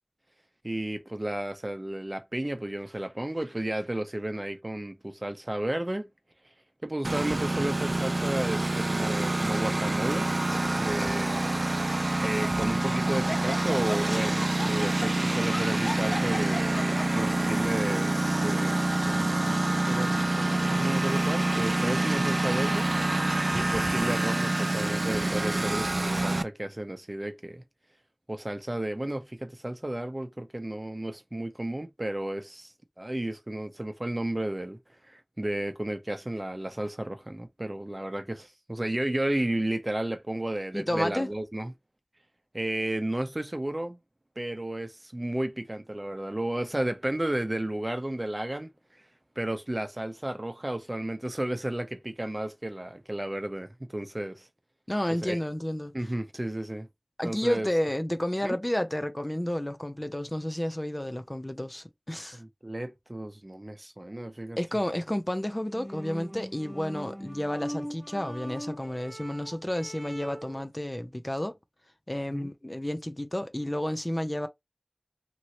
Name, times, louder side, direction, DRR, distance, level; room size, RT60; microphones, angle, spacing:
voice 1, 0.6-6.1 6.8-10.3 10.8-11.5 12.2-19.6 19.9-22.9 23.5-27.6 28.3-34.8 35.0-41.7 42.5-44.0 44.4-48.7 49.4-54.5 55.2-55.4 55.9-56.9 57.2-57.7 58.4-58.6 62.3-64.6 72.3-72.5, right 1 dB, 40° right, 0.6 m, -33 dB
Engine, 7.0-26.4, right 2 dB, 75° right, 0.3 m, -27 dB
Laughter, 9.4-9.9 10.5-10.6 11.8-17.4, left 1 dB, 75° left, 0.7 m, -38 dB
voice 2, 40.7-41.3 54.9-55.9 57.2-62.4 64.6-71.6 72.1-74.5, left 1 dB, 30° left, 0.5 m, -31 dB
sound 1, 65.6-70.7, equal, 10° right, 1.2 m, -40 dB
3.1 x 2.7 x 2.9 m
wide cardioid pair, 40°, 0 cm